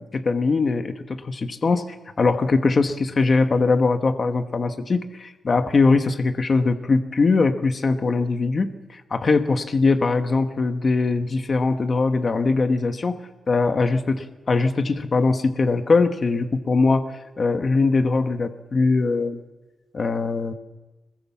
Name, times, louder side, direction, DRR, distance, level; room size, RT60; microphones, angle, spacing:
voice 1, 0.0-1.8 2.2-13.2 13.5-19.4 19.9-20.5, left 3 dB, 35° left, 7 dB, 1.1 m, -21 dB
22.0 x 21.0 x 7.1 m, 1.2 s
wide cardioid pair, 160°, 0 cm